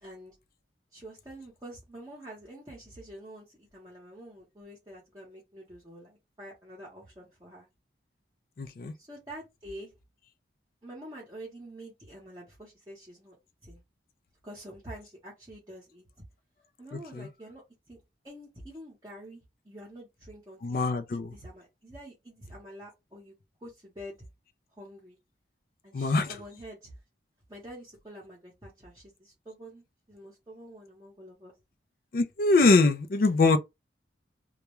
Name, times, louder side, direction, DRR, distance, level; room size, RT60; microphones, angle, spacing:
voice 1, 0.0-0.4 0.9-7.7 9.0-9.9 10.8-13.4 13.6-13.8 14.4-16.2 16.8-17.6 17.9-18.0 18.2-20.8 21.1-24.2 24.7-25.2 25.8-26.9 27.5-31.5, right 1 dB, 20° right, 0.8 m, -47 dB
voice 2, 8.6-8.9 17.1-17.3 20.6-21.3 25.9-26.3 32.1-33.6, left 3 dB, 50° left, 0.4 m, -23 dB
2.3 x 2.1 x 2.9 m
head